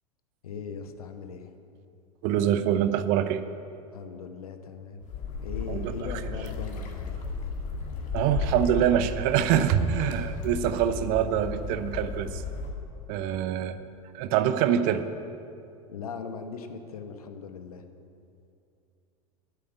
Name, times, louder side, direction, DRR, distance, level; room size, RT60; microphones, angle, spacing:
voice 1, 0.4-1.5 3.9-5.0 5.4-7.5 10.1-10.2 15.9-17.8, left 5 dB, 75° left, 8 dB, 1.0 m, -39 dB
voice 2, 2.2-3.4 5.7-5.9 8.1-12.4 13.1-13.8 14.1-15.0, right 10 dB, 50° right, 12 dB, 0.7 m, -25 dB
sound 1, 5.0-12.7, left 4 dB, 40° left, 1.9 m, -34 dB
8.6 x 8.3 x 8.7 m, 2.6 s
figure-of-eight pair, 85°, 19 cm